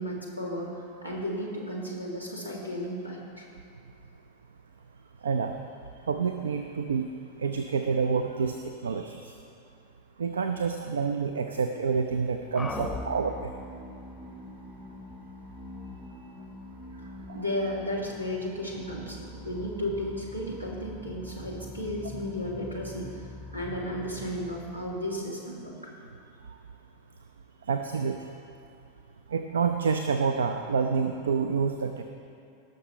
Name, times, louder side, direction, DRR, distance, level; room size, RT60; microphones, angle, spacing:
voice 1, 0.0-3.5 17.3-25.7, equal, 85° right, -2 dB, 2.1 m, -34 dB
voice 2, 5.2-5.6 6.1-7.1 7.4-9.3 10.2-13.5 17.3-17.4 27.7-28.2 29.3-32.0, right 5 dB, 70° right, 6 dB, 0.5 m, -28 dB
sound 1, 12.6-25.4, left 2 dB, 10° left, 0.7 m, -43 dB
18.0 x 6.6 x 4.3 m, 2.6 s
figure-of-eight pair, 90°, 0 cm